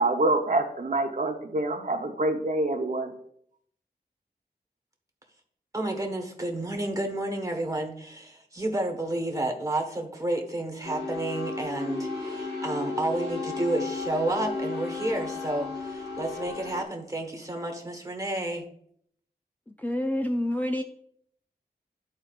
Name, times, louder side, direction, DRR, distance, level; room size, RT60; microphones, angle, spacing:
voice 1, 0.0-3.1, right 2 dB, 50° right, 3 dB, 0.8 m, -26 dB
voice 2, 5.7-18.6, right 1 dB, 20° right, 2 dB, 1.2 m, -31 dB
sound 1, 10.8-16.8, left 3 dB, 85° left, 1.6 m, -34 dB
voice 3, 19.7-20.8, left 1 dB, 10° left, 2 dB, 0.4 m, -28 dB
11.5 x 4.2 x 2.4 m, 0.66 s
wide cardioid pair, 80°, 17 cm